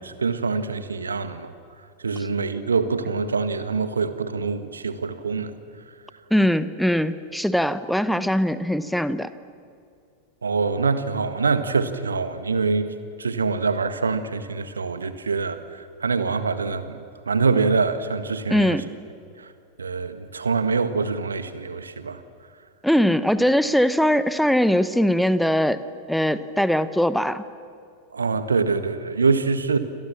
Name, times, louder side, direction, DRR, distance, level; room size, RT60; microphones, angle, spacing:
voice 1, 0.2-1.5 2.0-5.5 10.4-12.9 13.2-18.8 19.4-19.5 19.8-22.2 28.1-29.8, right 4 dB, 75° right, 11 dB, 1.7 m, -24 dB
voice 2, 6.3-9.3 18.5-18.9 22.8-25.8 26.1-27.4, equal, ahead, 14 dB, 1.1 m, -21 dB
27.5 x 27.5 x 7.4 m, 2.4 s
figure-of-eight pair, 90°, 0 cm